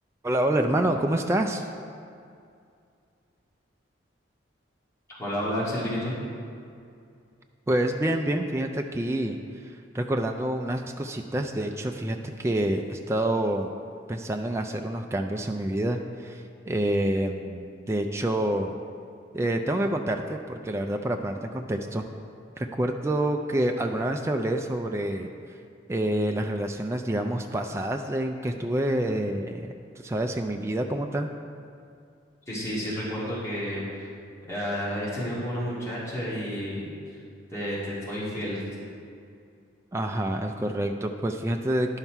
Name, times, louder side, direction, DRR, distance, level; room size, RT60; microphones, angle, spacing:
voice 1, 0.2-1.7 7.7-9.4 9.9-13.7 14.1-18.7 19.3-22.1 22.6-25.3 25.9-31.3 39.9-42.0, right 1 dB, 15° right, 4 dB, 0.3 m, -27 dB
voice 2, 5.2-6.2 32.5-34.1 34.5-37.2 37.5-38.6, equal, 15° left, -9 dB, 2.0 m, -31 dB
11.0 x 5.7 x 4.5 m, 2.4 s
head